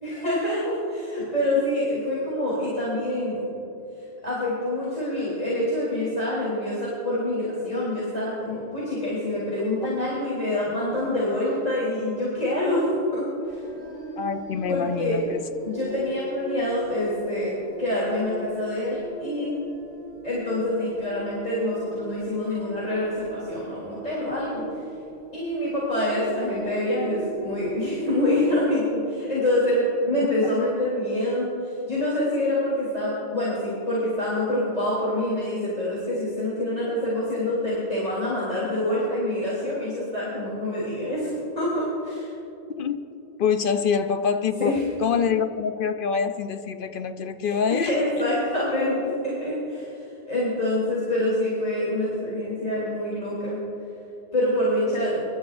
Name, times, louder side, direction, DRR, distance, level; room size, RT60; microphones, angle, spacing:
voice 1, 0.0-3.4 4.2-13.6 14.7-15.2 15.6-19.6 20.2-24.6 25.3-42.3 44.6-44.8 47.4-49.9 50.3-53.6 54.3-55.3, left 1 dB, 35° left, -8 dB, 3.5 m, -26 dB
sound 1, 13.4-28.6, right 2 dB, 75° right, 3.7 m, -39 dB
voice 2, 14.2-15.4 42.7-43.0 43.4-48.3, left 6 dB, 60° left, 9 dB, 0.7 m, -25 dB
25.5 x 12.5 x 2.5 m, 2.9 s
omnidirectional pair, 1.1 m